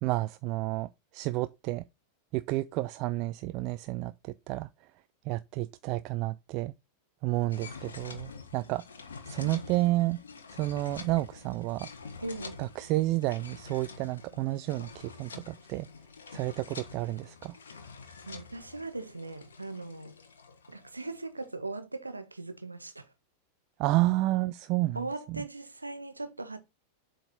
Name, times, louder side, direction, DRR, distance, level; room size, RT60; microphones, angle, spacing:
voice 1, 0.0-1.8 2.3-4.9 5.3-6.7 7.2-8.8 9.2-10.2 10.5-11.9 12.6-15.9 16.3-17.5 23.8-25.0 25.3-25.4, right 18 dB, 40° right, 0.3 m, -30 dB
sound 1, 7.5-21.5, left 5 dB, 70° left, 1.2 m, -47 dB
voice 2, 9.3-9.7 12.2-12.6 18.2-20.2 20.7-23.1 24.9-26.6, right 2 dB, 80° right, 0.9 m, -39 dB
7.7 x 3.9 x 4.3 m
figure-of-eight pair, 90°, 0 cm